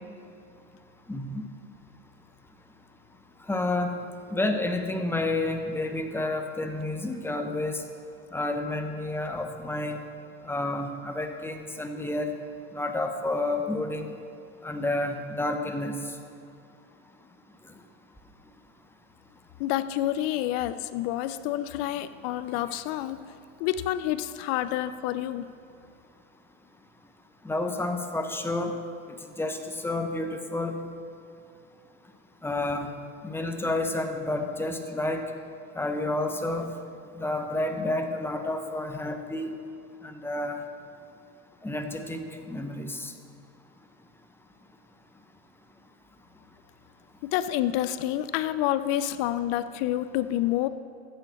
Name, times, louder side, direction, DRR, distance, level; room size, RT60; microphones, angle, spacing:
voice 1, 1.1-1.4 3.5-3.9 4.3-7.8 8.3-10.0 10.5-12.3 12.7-14.1 14.6-16.0 27.4-28.7 29.4-29.6 29.8-30.8 32.4-32.9 33.2-35.2 35.8-36.7 37.2-39.5 40.0-40.6 41.6-43.1, left 2 dB, 5° left, 5 dB, 0.9 m, -30 dB
voice 2, 19.6-23.2 23.6-25.5 47.2-50.7, left 13 dB, 50° left, 14 dB, 0.5 m, -28 dB
13.0 x 8.4 x 4.3 m, 2.4 s
hypercardioid pair, 100°, 40 cm